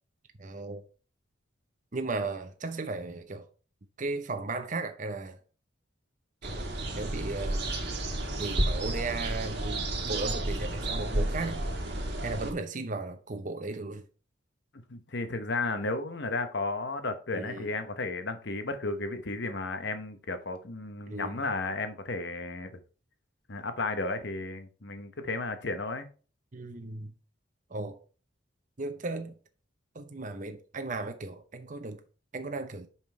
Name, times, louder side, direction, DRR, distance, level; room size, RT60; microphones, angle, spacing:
voice 1, 0.4-0.8 1.9-3.4 4.0-5.4 6.4-7.8 8.4-11.6 12.2-14.0 17.3-17.7 21.1-21.4 26.5-27.1 27.7-28.0 28.8-29.3 29.9-32.0 32.3-32.9, right 3 dB, 40° right, 0.8 m, -36 dB
sound 1, 6.4-12.5, right 1 dB, 55° right, 1.5 m, -31 dB
voice 2, 14.9-22.8 23.5-26.1, left 3 dB, 60° left, 1.0 m, -33 dB
5.7 x 5.3 x 4.5 m
head